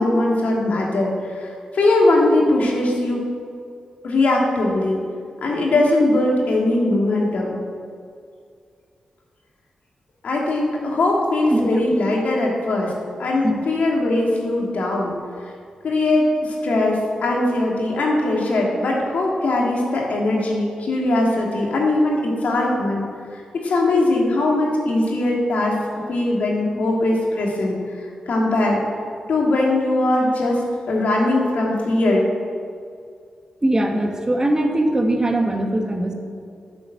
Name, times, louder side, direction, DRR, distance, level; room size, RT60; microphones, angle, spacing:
voice 1, 0.0-1.5 1.7-3.2 4.0-5.0 5.4-7.6 10.2-12.9 13.2-15.1 15.8-23.0 23.6-25.7 26.1-27.8 28.3-28.8 29.3-30.6 30.9-32.3, left 2 dB, 75° left, -2 dB, 2.7 m, -20 dB
voice 2, 33.6-36.1, right 1 dB, 25° right, 2 dB, 2.0 m, -21 dB
10.0 x 7.8 x 7.7 m, 2.3 s
supercardioid pair, 40°, 3 cm